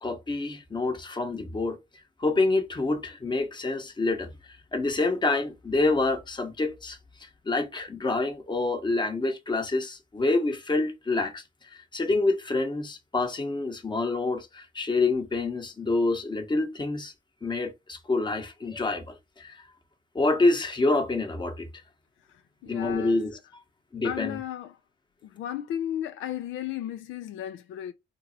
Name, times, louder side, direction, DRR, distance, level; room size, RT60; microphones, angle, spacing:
voice 1, 0.0-1.8 2.2-4.3 4.7-11.4 11.7-17.1 17.4-19.6 20.1-21.7 22.6-23.4 23.9-24.4, left 2 dB, 25° left, 0.9 m, -27 dB
voice 2, 22.6-23.2 24.0-24.8 25.2-27.9, left 11 dB, 80° left, 0.4 m, -34 dB
3.9 x 2.0 x 3.9 m
cardioid pair, 90°, 20 cm